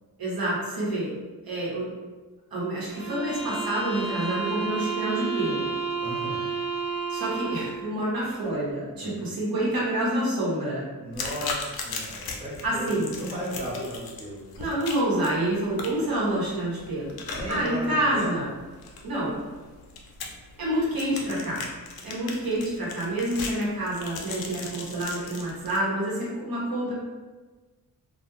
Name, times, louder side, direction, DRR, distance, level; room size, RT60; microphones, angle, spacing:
voice 1, 0.2-1.1 1.4-1.9 2.5-5.7 7.1-10.9 12.6-13.2 14.6-17.2 17.5-18.5 19.0-19.4 20.6-21.6 22.0-26.9, right 1 dB, 70° right, -6 dB, 1.0 m, -28 dB
sound 1, 2.9-7.9, right 5 dB, 40° right, 1.2 m, -31 dB
voice 2, 6.0-6.4 9.0-9.4 11.0-14.6 17.3-18.5 22.0-22.1, equal, 20° right, -5 dB, 0.8 m, -36 dB
sound 2, 11.1-25.8, left 4 dB, 75° left, 0.5 m, -38 dB
2.3 x 2.2 x 3.0 m, 1.3 s
wide cardioid pair, 115°, 37 cm